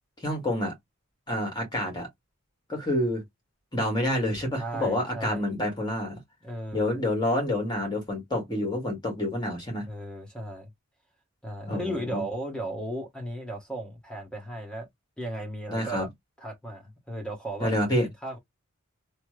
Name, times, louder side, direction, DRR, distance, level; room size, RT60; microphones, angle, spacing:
voice 1, 0.2-0.7 1.3-2.1 2.7-3.2 3.7-6.2 6.7-9.9 11.6-12.2 15.7-16.1 17.6-18.1, left 1 dB, 20° left, 1.5 m, -28 dB
voice 2, 4.6-5.4 6.4-6.9 9.9-10.7 11.4-14.9 15.2-16.1 16.4-17.7 18.2-18.4, right 1 dB, 5° left, 1.1 m, -35 dB
3.2 x 2.1 x 3.0 m
head